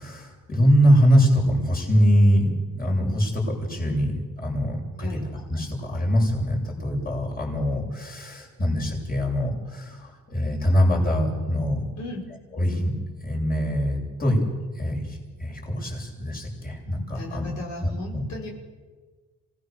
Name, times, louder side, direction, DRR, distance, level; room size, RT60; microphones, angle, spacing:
voice 1, 0.0-11.8 12.5-12.9 13.2-14.4 14.7-17.5 17.8-18.2, equal, 30° left, -2 dB, 7.8 m, -23 dB
voice 2, 12.0-12.3 17.1-18.5, left 2 dB, 65° left, -2 dB, 5.8 m, -36 dB
26.5 x 19.0 x 7.0 m, 1.4 s
cardioid pair, 90°, 30 cm